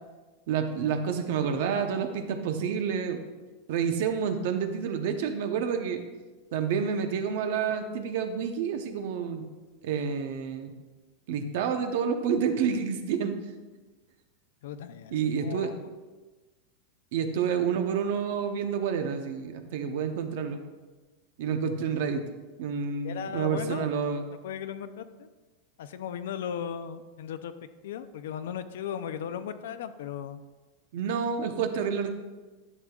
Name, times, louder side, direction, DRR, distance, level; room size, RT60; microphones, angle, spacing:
voice 1, 0.5-3.2 3.7-6.0 6.5-9.4 9.8-10.7 11.3-13.4 15.1-15.7 17.1-20.6 21.4-22.2 22.6-24.3 30.9-32.1, right 7 dB, 65° right, 7 dB, 0.8 m, -29 dB
voice 2, 14.6-15.9 23.0-23.9 24.4-25.3 25.8-27.5 27.8-30.4, left 8 dB, 80° left, 11 dB, 0.5 m, -37 dB
11.0 x 7.7 x 2.4 m, 1.3 s
supercardioid pair, 155°, 0 cm